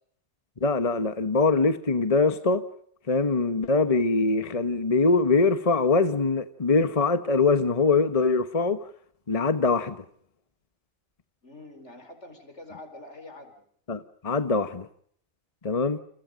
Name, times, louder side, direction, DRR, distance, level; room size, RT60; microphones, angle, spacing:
voice 1, 0.6-2.6 3.1-8.8 9.3-10.0 13.9-14.9 15.6-16.0, left 3 dB, 35° left, 1.2 m, -23 dB
voice 2, 11.4-13.6 15.8-16.0, left 2 dB, 80° left, 5.0 m, -46 dB
29.0 x 28.0 x 5.2 m
omnidirectional pair, 1.2 m